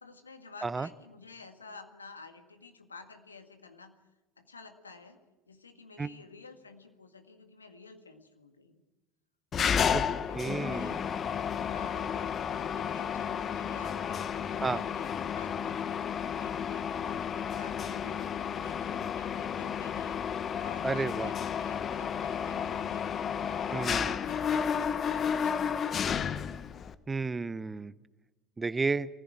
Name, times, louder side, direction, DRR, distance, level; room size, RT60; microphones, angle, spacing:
voice 1, 0.0-3.9 4.4-5.2 5.5-8.8 9.6-11.0 11.6-16.9 17.3-26.3, left 4 dB, 90° left, 7 dB, 1.8 m, -52 dB
Mechanisms, 9.5-26.9, left 7 dB, 35° left, 1.1 m, -32 dB
voice 2, 10.3-11.0 14.6-14.8 20.8-21.3 23.7-24.2 27.1-27.9 28.6-29.1, right 4 dB, 20° right, 18 dB, 0.8 m, -32 dB
23.5 x 15.0 x 8.9 m, 1.2 s
figure-of-eight pair, 70°, 0 cm